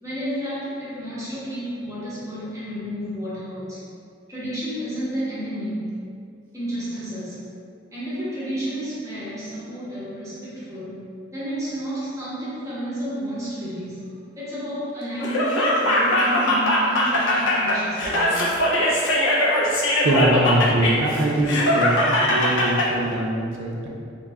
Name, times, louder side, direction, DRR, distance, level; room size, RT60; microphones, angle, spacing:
voice 1, 0.0-3.8 4.3-5.9 6.5-7.4 7.9-11.0 11.3-14.1 14.4-18.5, equal, 15° right, -10 dB, 0.6 m, -31 dB
Laughter, 15.2-22.9, left 1 dB, 80° left, 0.5 m, -21 dB
voice 2, 20.0-22.0 22.3-23.9, right 1 dB, 80° right, -1 dB, 0.4 m, -22 dB
2.3 x 2.0 x 3.2 m, 2.3 s
head